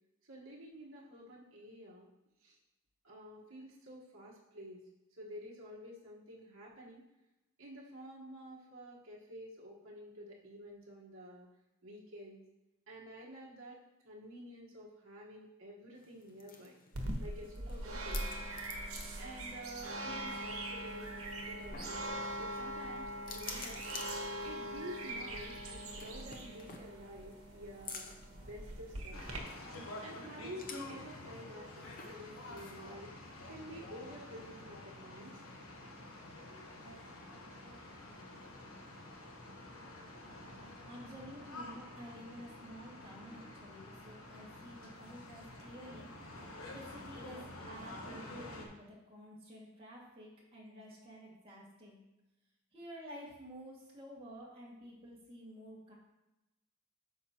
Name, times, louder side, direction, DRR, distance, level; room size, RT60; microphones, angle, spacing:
voice 1, 0.3-2.1 2.4-2.6 3.0-4.8 5.2-7.0 7.6-11.5 11.8-12.4 12.9-13.8 14.0-16.7 17.2-18.3 19.2-22.0 22.4-23.8 24.4-29.5 30.0-33.1 33.5-35.4, equal, 65° right, -5 dB, 1.3 m, -50 dB
sound 1, 15.9-32.9, left 5 dB, 45° left, 0.7 m, -53 dB
sound 2, 16.9-29.4, right 1 dB, 85° right, 1.2 m, -42 dB
sound 3, 29.1-48.7, left 1 dB, 80° left, 1.2 m, -49 dB
voice 2, 40.9-46.1 46.7-52.0 52.7-55.9, equal, 25° right, -5 dB, 2.1 m, -51 dB
9.0 x 6.0 x 2.9 m, 0.97 s
head